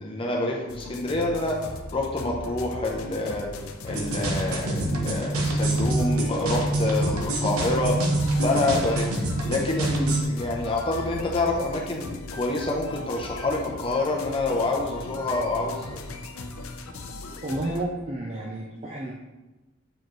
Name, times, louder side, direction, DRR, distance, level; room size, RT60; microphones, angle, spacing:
voice 1, 0.0-1.6 1.9-3.5 3.8-7.9 8.4-9.1 9.4-16.0, left 2 dB, 25° left, -1 dB, 0.6 m, -27 dB
sound 1, 0.7-17.9, left 2 dB, 75° left, 0.6 m, -39 dB
sound 2, 3.9-10.2, right 1 dB, 85° right, 1.0 m, -26 dB
voice 2, 17.4-19.1, right 1 dB, 30° right, -1 dB, 0.5 m, -31 dB
7.5 x 4.7 x 3.1 m, 1.1 s
head